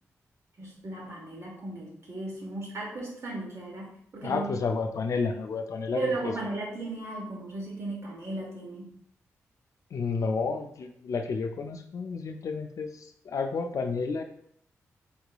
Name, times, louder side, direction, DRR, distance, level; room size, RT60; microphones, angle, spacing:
voice 1, 0.6-4.5 5.9-8.9, right 2 dB, 55° right, -2 dB, 1.2 m, -36 dB
voice 2, 4.2-6.3 9.9-14.2, left 4 dB, 65° left, 6 dB, 0.4 m, -31 dB
3.5 x 3.0 x 2.3 m, 0.68 s
supercardioid pair, 45°, 6 cm